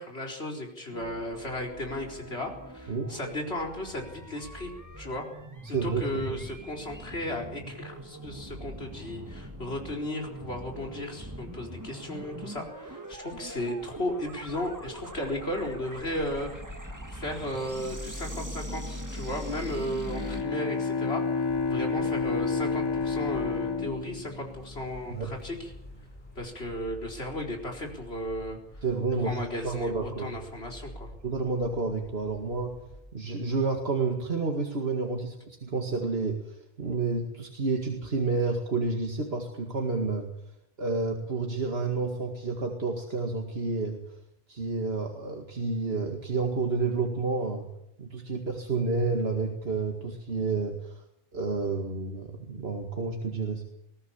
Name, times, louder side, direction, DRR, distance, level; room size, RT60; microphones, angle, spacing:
voice 1, 0.0-4.7 5.0-5.3 5.7-25.7 26.4-28.6 29.2-31.1, left 1 dB, 90° left, 1 dB, 4.6 m, -35 dB
sound 1, 0.9-20.4, equal, 15° right, 1.9 m, -42 dB
voice 2, 5.6-6.2 25.1-25.3 28.8-30.3 31.2-32.8 33.1-40.3 40.8-44.0 44.5-47.7 48.0-51.0 51.3-53.6, right 4 dB, 75° right, 2 dB, 2.3 m, -30 dB
Bowed string instrument, 20.1-25.2, left 4 dB, 25° left, 1.0 m, -30 dB
sound 2, 21.4-33.0, left 1 dB, 50° left, 5.9 m, -49 dB
21.0 x 18.0 x 7.2 m, 0.78 s
omnidirectional pair, 1.0 m